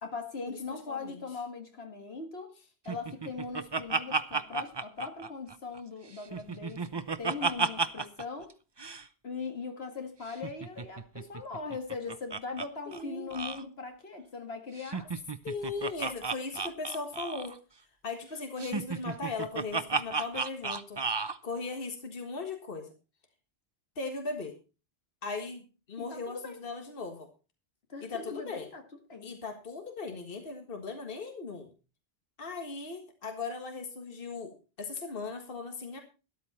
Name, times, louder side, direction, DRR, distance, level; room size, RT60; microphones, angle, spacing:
voice 1, 0.0-2.5 2.9-8.5 9.2-15.1 26.0-26.6 27.9-28.8 29.1-29.3, left 4 dB, 75° left, 2.1 m, -40 dB
voice 2, 0.9-1.2 12.9-13.3 15.4-17.6 18.0-22.9 24.0-24.6 25.2-27.3 28.0-28.7 29.2-31.7 32.4-36.0, left 4 dB, 60° left, 1.8 m, -38 dB
Laughter, 2.9-5.8 6.1-8.2 8.5-8.6 8.8-9.0 10.3-12.7 12.9-13.0 13.3-13.6 14.8-17.6 18.6-21.4, right 4 dB, 30° right, 0.6 m, -33 dB
13.0 x 11.5 x 4.2 m
omnidirectional pair, 1.0 m